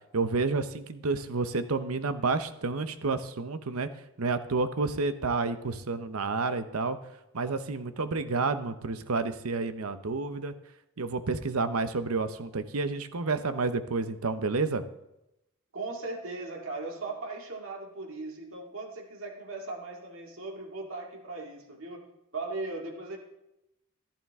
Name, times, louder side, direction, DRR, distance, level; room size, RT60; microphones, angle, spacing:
voice 1, 0.1-3.9 4.2-7.0 7.3-10.5 11.0-14.8, right 3 dB, 85° right, 11 dB, 0.8 m, -30 dB
voice 2, 15.7-22.0 22.3-23.2, right 3 dB, 70° right, 1 dB, 2.3 m, -38 dB
14.5 x 11.5 x 3.6 m, 0.89 s
head